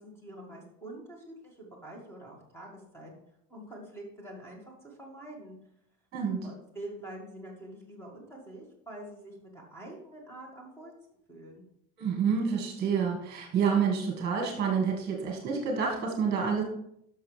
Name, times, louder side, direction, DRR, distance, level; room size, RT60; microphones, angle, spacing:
voice 1, 0.0-3.1 3.5-5.6 6.4-10.9 11.3-11.6, right 1 dB, 5° left, -1 dB, 2.1 m, -46 dB
voice 2, 12.0-16.6, right 6 dB, 30° right, 1 dB, 1.8 m, -28 dB
12.0 x 6.3 x 3.4 m, 0.74 s
cardioid pair, 170°, 36 cm